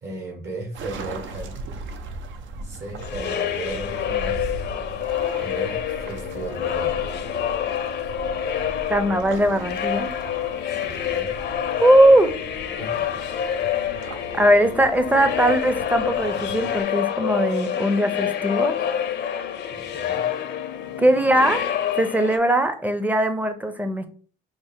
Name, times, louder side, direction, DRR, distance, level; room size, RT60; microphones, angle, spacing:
voice 1, 0.0-1.6 2.6-4.4 5.4-7.2 10.7-11.3 12.8-13.3 14.3-14.5 19.7-20.2, right 2 dB, 60° right, 0 dB, 1.4 m, -36 dB
sound 1, 0.7-16.8, right 3 dB, 75° right, 0.5 m, -38 dB
sound 2, 3.0-22.4, left 9 dB, 60° left, 0.5 m, -27 dB
voice 2, 8.9-10.1 11.8-12.3 14.3-18.8 21.0-21.6 21.9-24.1, right 1 dB, 10° right, 9 dB, 0.5 m, -19 dB
4.3 x 2.0 x 3.5 m, 0.42 s
cardioid pair, 90°, 20 cm